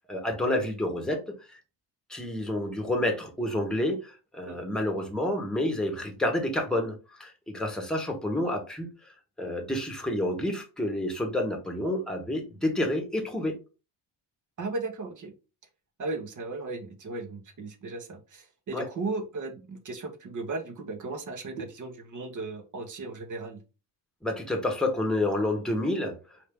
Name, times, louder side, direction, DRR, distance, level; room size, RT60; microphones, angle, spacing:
voice 1, 0.1-1.2 1.5-1.6 2.1-8.9 9.4-13.6 18.7-18.9 24.2-26.2, left 1 dB, ahead, 1.1 m, -29 dB
voice 2, 14.6-15.3 16.0-23.6, right 3 dB, 40° right, 1.0 m, -36 dB
4.3 x 2.7 x 3.5 m
cardioid pair, 110°, 44 cm